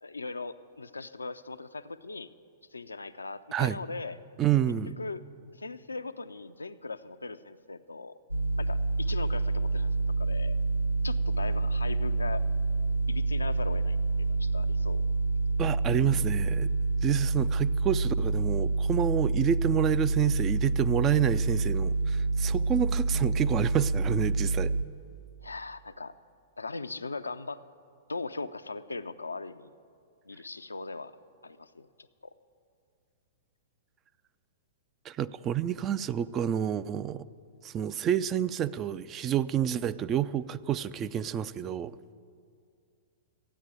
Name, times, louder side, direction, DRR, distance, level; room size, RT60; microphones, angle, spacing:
voice 1, 0.0-2.3 2.7-4.2 5.0-5.2 5.6-8.1 8.6-10.6 11.0-12.4 13.1-14.0 14.3-15.1 25.4-26.1 26.6-27.6 28.1-29.7 30.3-31.1 31.4-31.9 32.2-32.3, left 3 dB, 75° left, 0.4 m, -39 dB
voice 2, 4.4-4.9 15.6-16.7 17.0-24.7 35.0-37.3 37.6-42.0, right 10 dB, 25° right, 0.3 m, -29 dB
sound 1, 8.3-24.8, right 3 dB, 90° right, 0.6 m, -27 dB
14.0 x 9.3 x 9.1 m
figure-of-eight pair, 105°, 0 cm